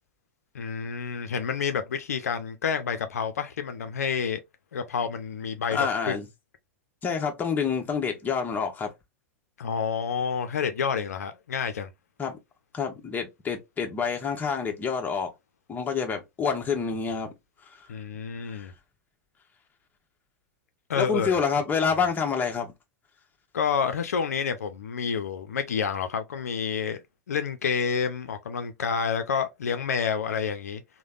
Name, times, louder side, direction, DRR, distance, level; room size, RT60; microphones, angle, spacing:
voice 1, 0.5-4.4 4.7-6.1 9.6-11.9 17.9-18.7 20.9-21.4 21.9-22.0 23.5-27.0 27.3-30.8, left 6 dB, 90° left, 0.4 m, -29 dB
voice 2, 5.7-6.3 7.0-8.9 12.2-12.4 12.7-15.3 15.7-17.3 18.5-18.7 21.0-22.7, left 6 dB, 20° left, 0.9 m, -27 dB
3.2 x 2.1 x 2.4 m
hypercardioid pair, 110°, 8 cm